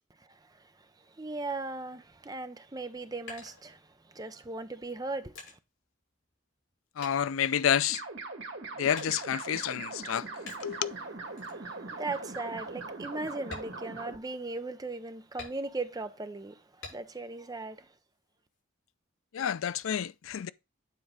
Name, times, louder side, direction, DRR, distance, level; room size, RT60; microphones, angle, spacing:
voice 1, 1.2-5.3 11.6-17.9, right 3 dB, 20° right, 0.6 m, -38 dB
sound 1, 2.9-4.2 4.9-6.7 7.0-8.2 8.9-9.6 10.5-10.9 11.4-11.6 12.1-12.2 12.6-12.8 13.4-14.6 15.4-16.0 16.8-17.4 17.8-18.6, left 3 dB, 70° left, 5.5 m, -48 dB
voice 2, 7.0-8.0 8.8-10.3 10.6-10.9 19.3-20.5, left 9 dB, 85° left, 0.4 m, -29 dB
sound 2, 7.9-14.2, right 3 dB, 65° right, 2.2 m, -41 dB
9.4 x 4.0 x 4.8 m
head